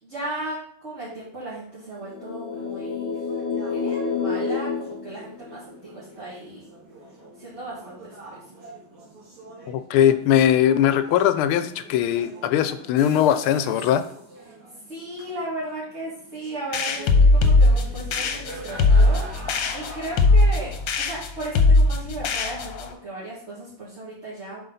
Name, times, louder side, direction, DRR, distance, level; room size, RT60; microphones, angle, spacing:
voice 1, 0.0-3.1 3.7-6.7 7.4-8.4 14.9-19.2 19.7-24.7, right 2 dB, 30° right, -9 dB, 2.5 m, -36 dB
sound 1, 2.0-5.9, left 5 dB, 30° left, 1.2 m, -29 dB
sound 2, 2.5-20.4, right 2 dB, 85° right, 3.2 m, -45 dB
voice 2, 9.7-14.0, left 10 dB, 85° left, 12 dB, 1.4 m, -20 dB
sound 3, 16.7-22.9, left 2 dB, 65° left, 1.5 m, -19 dB
7.7 x 5.5 x 4.0 m, 0.62 s
omnidirectional pair, 2.3 m